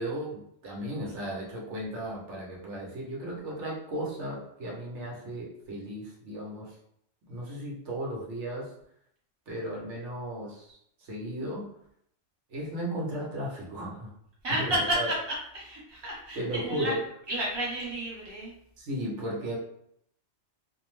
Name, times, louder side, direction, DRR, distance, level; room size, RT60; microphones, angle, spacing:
voice 1, 0.0-6.7 7.3-8.7 9.5-11.7 12.5-14.1 14.6-15.1 16.3-17.0 18.8-19.6, right 1 dB, 75° right, -4 dB, 1.1 m, -35 dB
voice 2, 14.4-15.2 15.5-17.0 17.3-18.5, right 1 dB, 25° right, -5 dB, 0.8 m, -31 dB
2.6 x 2.0 x 3.0 m, 0.71 s
omnidirectional pair, 1.2 m